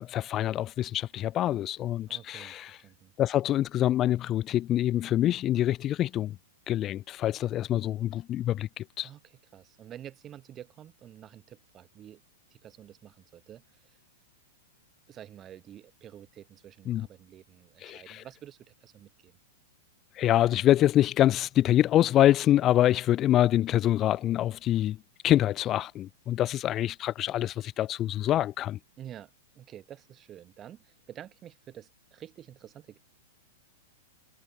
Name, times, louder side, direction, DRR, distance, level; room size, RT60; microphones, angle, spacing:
voice 1, 0.0-2.7 3.2-6.3 6.7-9.1 16.9-17.1 17.8-18.2 20.2-25.0 25.2-28.8, left 12 dB, 30° left, 0.3 m, -25 dB
voice 2, 2.1-3.1 9.0-12.2 12.5-14.0 15.1-19.4 29.0-29.3 29.6-33.0, right 11 dB, 25° right, 3.7 m, -49 dB
figure-of-eight pair, 100°, 0 cm